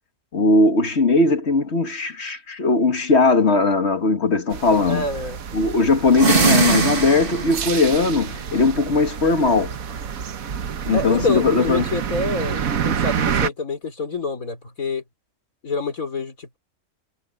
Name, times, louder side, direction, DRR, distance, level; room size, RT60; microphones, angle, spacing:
voice 1, 0.3-5.1 5.5-9.7 10.9-11.8, left 3 dB, 50° left, 1.9 m, -19 dB
sound 1, 4.5-13.5, right 7 dB, 90° right, 1.5 m, -28 dB
voice 2, 4.9-5.4 10.9-15.0 15.6-16.6, left 3 dB, 85° left, 4.0 m, -27 dB
sound 2, 6.1-7.7, right 5 dB, 40° right, 1.8 m, -20 dB
omnidirectional pair, 1.4 m